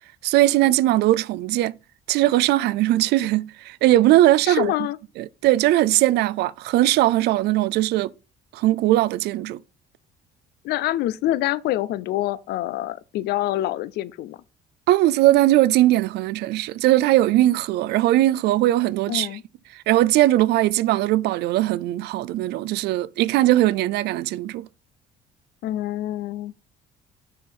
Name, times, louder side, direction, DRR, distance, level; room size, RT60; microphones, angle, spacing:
voice 1, 0.2-1.8 2.1-4.7 5.2-8.1 8.5-9.6 14.9-19.3 19.9-24.7, right 15 dB, 75° right, 0.4 m, -19 dB
voice 2, 4.4-5.0 10.6-14.4 19.1-19.4 25.6-26.5, left 14 dB, 75° left, 0.5 m, -26 dB
6.3 x 4.6 x 5.3 m
cardioid pair, 110°, 17 cm